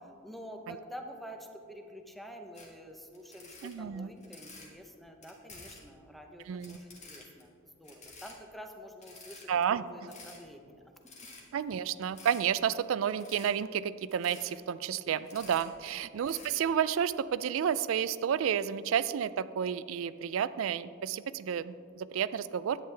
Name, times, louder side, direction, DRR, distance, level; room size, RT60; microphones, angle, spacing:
voice 1, 0.2-10.8 11.6-11.7 16.0-16.1, equal, ahead, 3 dB, 0.7 m, -48 dB
sound 1, 2.5-2.7 3.1-4.7 5.2-5.9 6.4-7.4 7.8-8.3 8.7-8.8 9.0-9.6 10.0-10.4 11.0-11.6 12.1-12.5 13.1-13.5 14.1-14.5 15.1-15.9 16.2-16.6, left 3 dB, 35° left, 1.7 m, -50 dB
voice 2, 3.6-4.1 6.5-6.8 9.5-10.1 11.5-22.8, right 8 dB, 70° right, 16 dB, 0.3 m, -31 dB
11.0 x 9.0 x 3.3 m, 2.4 s
head